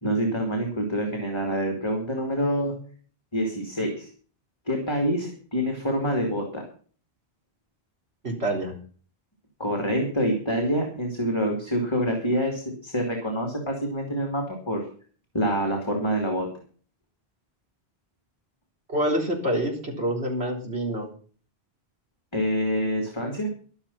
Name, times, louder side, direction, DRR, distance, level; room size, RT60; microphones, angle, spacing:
voice 1, 0.0-2.7 3.3-4.1 4.7-6.6 9.6-14.8 15.3-16.5 22.3-23.5, equal, 25° left, 2 dB, 3.1 m, -26 dB
voice 2, 8.2-8.7 18.9-21.1, right 1 dB, 90° right, 1 dB, 4.1 m, -27 dB
13.0 x 12.0 x 5.8 m, 0.43 s
omnidirectional pair, 1.0 m